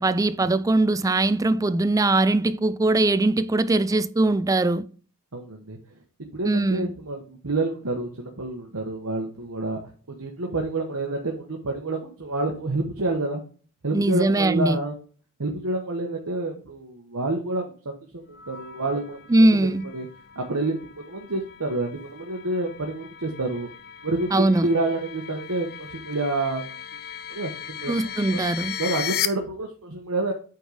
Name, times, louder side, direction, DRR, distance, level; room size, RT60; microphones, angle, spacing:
voice 1, 0.0-4.8 6.5-6.9 13.9-14.8 19.3-19.8 24.3-24.7 27.9-28.7, right 2 dB, 15° right, 0.4 m, -21 dB
voice 2, 5.3-5.8 6.3-9.8 10.2-13.4 13.8-14.9 15.4-19.4 19.9-20.1 20.3-23.7 24.0-26.8 27.3-28.4 28.8-30.3, right 2 dB, 70° right, 1.2 m, -28 dB
sound 1, 18.3-29.3, left 9 dB, 45° left, 0.6 m, -37 dB
8.7 x 3.9 x 4.9 m
head